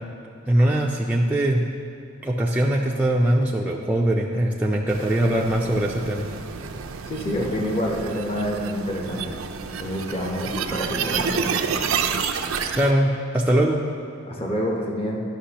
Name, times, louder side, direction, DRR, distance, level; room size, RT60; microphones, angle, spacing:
voice 1, 0.5-1.6 2.2-6.3 12.7-13.8, right 1 dB, 10° right, -3 dB, 0.3 m, -21 dB
sound 1, 4.9-12.9, right 6 dB, 80° right, 0.4 m, -29 dB
voice 2, 7.1-9.4 9.8-11.8 14.3-15.2, equal, 30° left, -1 dB, 0.8 m, -27 dB
11.5 x 5.9 x 2.9 m, 2.7 s
head